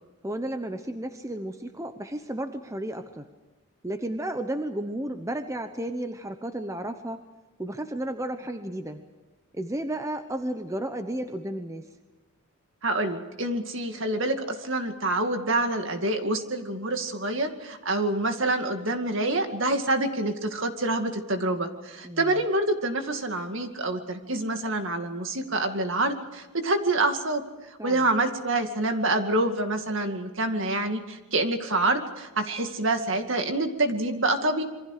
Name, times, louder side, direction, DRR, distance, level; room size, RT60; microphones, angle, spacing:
voice 1, 0.2-3.3 3.8-7.2 7.6-9.0 9.5-11.9 22.0-22.4 27.8-28.1, right 1 dB, 15° right, 7 dB, 0.9 m, -33 dB
voice 2, 12.8-27.4 27.8-34.6, right 2 dB, 55° right, 6 dB, 2.3 m, -27 dB
27.0 x 24.0 x 5.0 m, 1.2 s
head